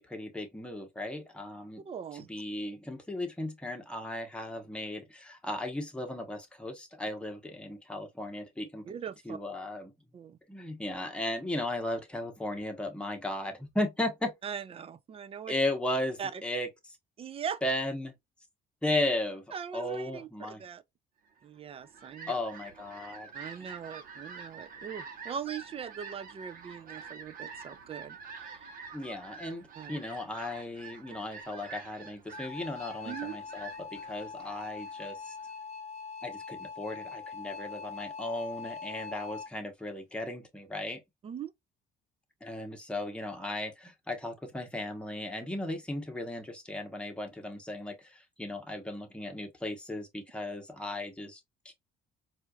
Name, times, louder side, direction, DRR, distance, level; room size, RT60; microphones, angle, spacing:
voice 1, 0.0-1.8 2.1-8.9 9.2-9.9 10.5-14.3 15.5-16.7 17.6-18.1 18.8-19.4 19.7-20.6 22.3-23.3 28.9-35.3 36.2-41.0 42.4-51.7, left 1 dB, 5° left, 1.1 m, -36 dB
voice 2, 1.9-2.3 8.9-9.4 10.1-10.4 14.4-15.5 16.2-16.4 17.2-17.6 19.5-20.8 21.4-22.3 23.3-28.7 29.8-30.0 33.1-33.4 41.2-41.5, right 7 dB, 35° right, 0.5 m, -40 dB
Fowl, 21.6-35.5, right 5 dB, 55° right, 1.1 m, -47 dB
sound 1, 32.3-39.5, left 5 dB, 40° left, 0.8 m, -42 dB
4.3 x 2.5 x 2.4 m
cardioid pair, 110°, 17 cm